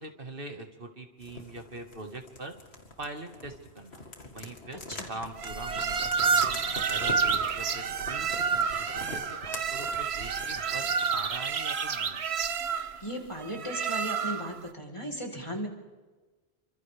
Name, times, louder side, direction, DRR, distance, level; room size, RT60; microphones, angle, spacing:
voice 1, 0.0-2.6 3.0-4.0 4.3-6.5 6.9-12.2, right 2 dB, 60° right, 4 dB, 2.1 m, -43 dB
sound 1, 1.2-11.2, left 2 dB, 85° left, 2.5 m, -44 dB
sound 2, 5.4-14.6, right 6 dB, 80° right, 1.2 m, -29 dB
voice 2, 13.0-15.7, equal, 30° left, 0 dB, 3.9 m, -36 dB
29.5 x 25.5 x 3.5 m, 1.3 s
omnidirectional pair, 1.1 m